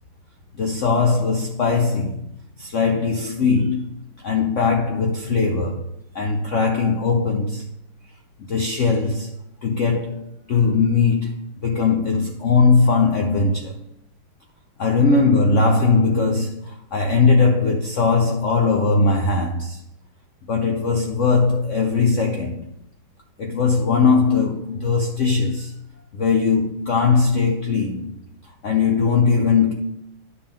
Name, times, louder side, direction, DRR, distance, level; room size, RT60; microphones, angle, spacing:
voice 1, 0.6-2.2 2.6-5.9 6.1-7.7 8.4-13.8 14.8-19.8 20.5-22.7 23.4-25.7 26.1-28.2 28.6-29.7, left 4 dB, 90° left, 0.6 m, -20 dB
9.7 x 6.7 x 3.6 m
omnidirectional pair, 2.3 m